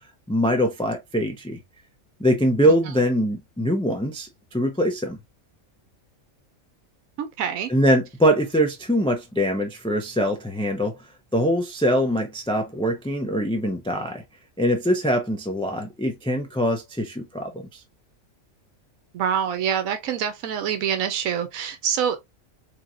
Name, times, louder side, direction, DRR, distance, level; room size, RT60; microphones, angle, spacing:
voice 1, 0.3-1.6 2.2-5.2 7.7-10.9 11.3-14.2 14.6-17.8, equal, 5° left, 0.4 m, -23 dB
voice 2, 7.2-7.7 19.1-22.2, right 8 dB, 90° right, 1.1 m, -25 dB
4.2 x 3.1 x 2.4 m
omnidirectional pair, 1.4 m